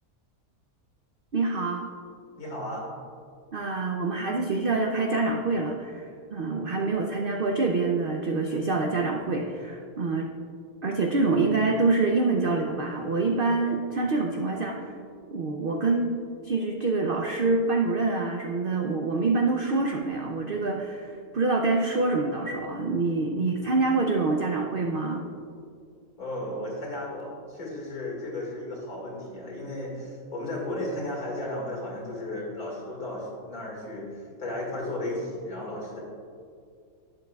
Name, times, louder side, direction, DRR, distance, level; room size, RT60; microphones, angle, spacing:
voice 1, 1.3-1.9 3.5-10.3 10.8-14.9 15.3-16.1 16.4-25.2, right 3 dB, 80° right, 2 dB, 0.5 m, -26 dB
voice 2, 2.4-2.9 26.2-36.0, left 1 dB, 60° left, -3 dB, 2.6 m, -34 dB
11.5 x 9.8 x 2.3 m, 2.3 s
omnidirectional pair, 1.8 m